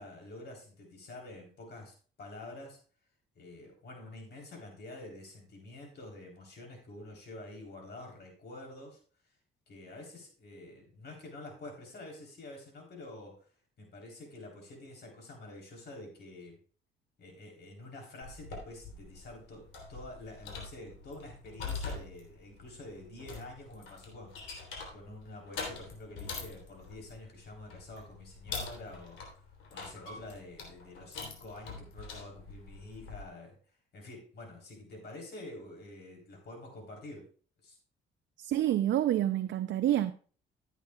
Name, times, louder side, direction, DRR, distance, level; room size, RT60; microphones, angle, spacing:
voice 1, 0.0-2.8 3.4-9.0 9.7-13.5 13.8-16.6 17.2-29.2 29.7-33.6 33.9-37.3 37.6-37.8, left 2 dB, 55° left, 3.7 m, -48 dB
sound 1, 18.2-33.3, left 4 dB, 80° left, 3.2 m, -44 dB
voice 2, 38.4-40.1, right 12 dB, 65° right, 0.5 m, -28 dB
15.0 x 8.2 x 2.3 m
cardioid pair, 90°, 20 cm